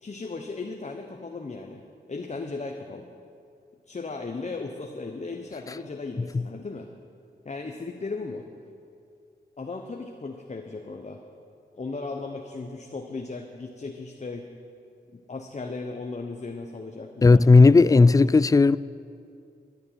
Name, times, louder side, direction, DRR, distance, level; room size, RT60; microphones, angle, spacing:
voice 1, 0.0-3.1 3.9-6.9 7.4-8.5 9.6-11.2 11.7-14.5 15.1-18.4, left 3 dB, 40° left, 1.0 m, -36 dB
voice 2, 17.2-18.8, left 3 dB, 20° left, 0.3 m, -15 dB
12.5 x 9.3 x 9.1 m
cardioid pair, 60°, 19 cm